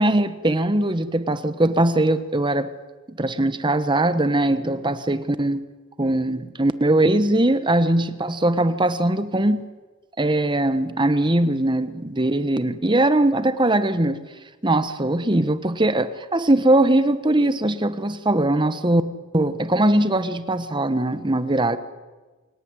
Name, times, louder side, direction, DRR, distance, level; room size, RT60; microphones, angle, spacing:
voice 1, 0.0-2.7 3.1-5.6 6.0-9.7 10.2-14.2 14.6-19.0 19.3-21.8, right 1 dB, 20° right, 12 dB, 1.2 m, -21 dB
27.5 x 17.5 x 9.7 m, 1.3 s
head